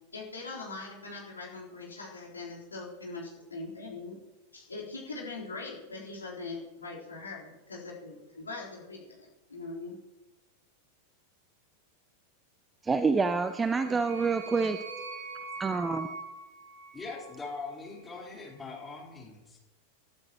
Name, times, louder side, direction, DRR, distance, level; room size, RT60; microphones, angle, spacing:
voice 1, 0.1-4.2 4.5-10.0, left 3 dB, 75° left, -5 dB, 4.0 m, -41 dB
voice 2, 12.8-14.8 15.6-16.1, right 4 dB, 15° right, 11 dB, 0.6 m, -27 dB
sound 1, 13.3-17.6, right 3 dB, 50° right, 2.9 m, -43 dB
voice 3, 16.9-19.6, left 4 dB, 15° left, -2 dB, 4.2 m, -41 dB
28.5 x 12.5 x 3.1 m, 1.1 s
figure-of-eight pair, 90°, 0 cm